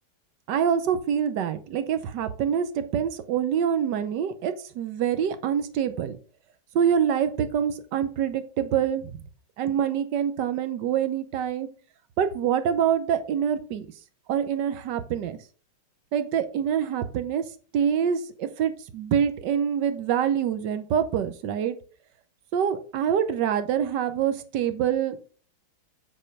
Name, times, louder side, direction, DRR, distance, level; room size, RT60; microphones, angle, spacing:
voice 1, 0.5-6.2 6.7-9.1 9.6-11.7 12.2-13.9 14.3-15.4 16.1-17.4 17.7-21.8 22.5-25.2, right 8 dB, 75° right, 10 dB, 1.4 m, -25 dB
7.6 x 4.2 x 5.1 m, 0.42 s
omnidirectional pair, 2.0 m